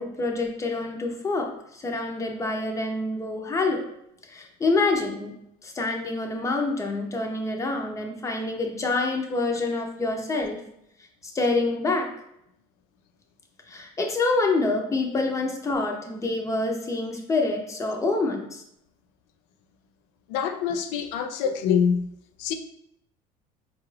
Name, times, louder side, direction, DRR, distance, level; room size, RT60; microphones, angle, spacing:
voice 1, 0.0-3.9 4.3-5.3 5.6-10.6 11.2-12.1 13.7-18.6 21.4-21.5, left 3 dB, 20° left, 0.7 m, -27 dB
voice 2, 20.3-22.1 22.4-22.5, left 7 dB, 85° left, 0.4 m, -25 dB
4.4 x 2.4 x 3.2 m
cardioid pair, 115°, 16 cm